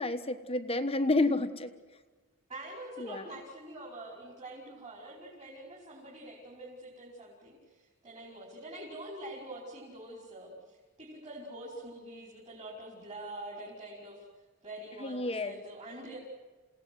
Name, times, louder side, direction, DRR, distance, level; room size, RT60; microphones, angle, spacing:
voice 1, 0.0-1.7 3.0-3.2 15.0-15.6, left 2 dB, 25° left, 8 dB, 1.2 m, -30 dB
voice 2, 2.5-14.2 14.6-16.2, right 1 dB, 30° right, -5 dB, 5.2 m, -45 dB
28.5 x 17.5 x 8.0 m, 1.3 s
head